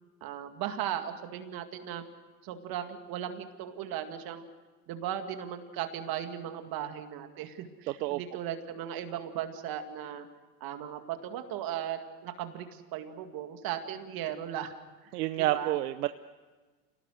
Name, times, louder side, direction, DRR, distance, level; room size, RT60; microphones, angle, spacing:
voice 1, 0.2-2.0 2.4-4.4 4.9-10.3 10.6-14.7 15.0-15.1 15.4-15.8, right 10 dB, 45° right, 7 dB, 2.2 m, -37 dB
voice 2, 7.9-8.2 15.1-16.1, right 16 dB, 75° right, 12 dB, 0.9 m, -29 dB
28.0 x 18.5 x 6.5 m, 1.3 s
hypercardioid pair, 105°, 48 cm